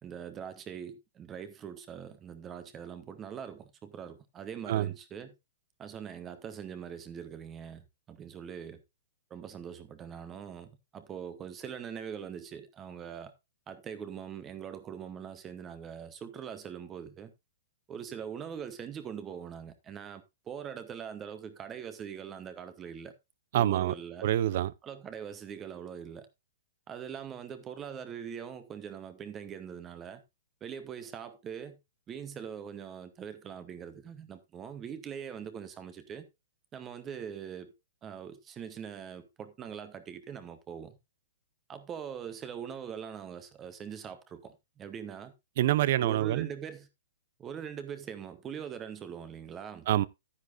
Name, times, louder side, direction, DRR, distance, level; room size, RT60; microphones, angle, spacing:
voice 1, 0.0-5.3 5.8-8.8 9.3-13.3 13.7-17.3 17.9-23.1 23.6-24.3 24.8-26.3 26.9-30.2 30.6-31.8 32.1-36.3 36.7-37.7 38.0-41.0 41.7-45.3 46.0-46.9 47.4-49.9, right 8 dB, 15° right, 0.9 m, -42 dB
voice 2, 23.5-23.9 24.2-24.7 45.6-46.5 49.9-50.1, right 13 dB, 50° right, 0.5 m, -26 dB
10.5 x 9.8 x 2.5 m
hypercardioid pair, 160°, 0 cm